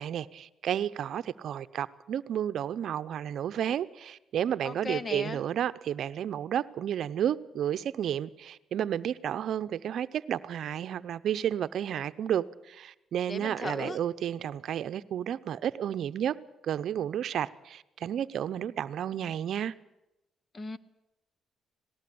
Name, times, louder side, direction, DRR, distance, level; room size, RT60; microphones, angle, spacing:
voice 1, 0.0-16.3 16.6-19.7, right 10 dB, 70° right, 0.7 m, -32 dB
voice 2, 4.6-5.4 13.3-14.0 20.5-20.8, left 3 dB, 30° left, 1.0 m, -36 dB
18.5 x 18.5 x 8.6 m
cardioid pair, 90°, 0 cm